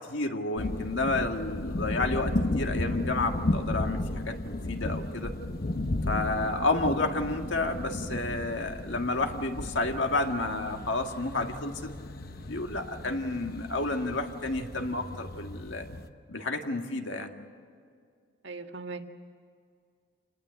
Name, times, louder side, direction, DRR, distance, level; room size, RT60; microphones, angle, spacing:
voice 1, 0.1-5.3 6.1-11.9 12.5-15.9 16.3-17.3, left 2 dB, 70° left, 4 dB, 1.9 m, -30 dB
sound 1, 0.6-16.1, left 1 dB, 50° left, 1.1 m, -34 dB
voice 2, 18.4-19.0, right 3 dB, 65° right, 5 dB, 1.8 m, -41 dB
28.0 x 19.0 x 8.9 m, 2.2 s
head